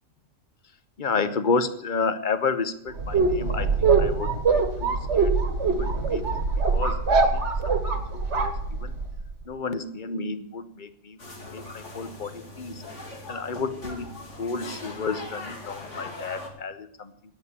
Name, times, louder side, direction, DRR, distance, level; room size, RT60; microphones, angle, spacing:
voice 1, 1.0-6.2 6.7-8.9 9.5-11.2 11.5-12.8 13.3-14.1 14.4-17.1, left 4 dB, 45° left, 12 dB, 1.0 m, -31 dB
sound 1, 3.0-9.2, right 4 dB, 65° right, 1.8 m, -23 dB
sound 2, 11.2-16.5, left 2 dB, 70° left, 2.7 m, -40 dB
11.0 x 8.7 x 8.7 m, 0.72 s
omnidirectional pair, 1.3 m